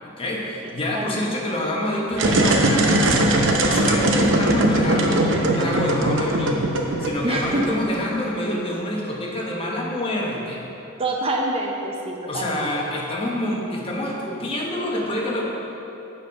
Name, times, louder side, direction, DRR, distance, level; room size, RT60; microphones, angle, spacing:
voice 1, 0.0-10.6 12.3-15.4, left 1 dB, 30° left, -2 dB, 1.0 m, -27 dB
voice 2, 0.9-1.3 7.2-7.8 11.0-12.7, right 1 dB, 30° right, 0 dB, 0.6 m, -26 dB
sound 1, 2.1-8.0, right 1 dB, 65° right, 0.7 m, -20 dB
7.2 x 5.4 x 5.2 m, 2.9 s
head